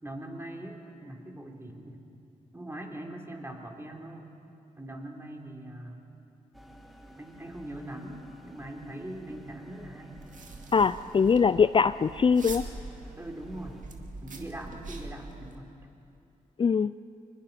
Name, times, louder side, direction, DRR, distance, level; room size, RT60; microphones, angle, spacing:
voice 1, 0.0-2.0 2.5-4.3 4.8-6.0 7.2-10.2 13.2-13.8 14.2-15.7, right 1 dB, 15° right, 1 dB, 3.5 m, -41 dB
sound 1, 6.5-13.8, right 1 dB, ahead, 2.4 m, -53 dB
sound 2, 10.1-15.6, right 3 dB, 60° right, 2.2 m, -44 dB
voice 2, 10.7-12.6 16.6-16.9, left 5 dB, 35° left, 15 dB, 0.4 m, -22 dB
23.5 x 20.0 x 5.7 m, 2.7 s
supercardioid pair, 50°, 15 cm